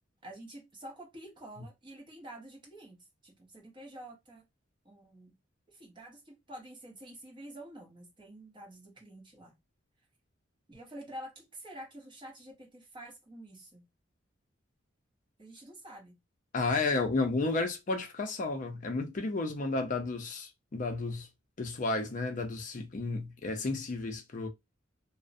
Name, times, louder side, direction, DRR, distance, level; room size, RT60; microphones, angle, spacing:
voice 1, 0.2-4.5 4.8-5.4 5.7-9.6 10.7-13.9 15.4-16.2 19.8-19.9, right 1 dB, 25° right, 0.7 m, -48 dB
voice 2, 16.5-21.3 21.6-24.5, left 3 dB, 40° left, 0.4 m, -32 dB
2.5 x 2.0 x 2.4 m
head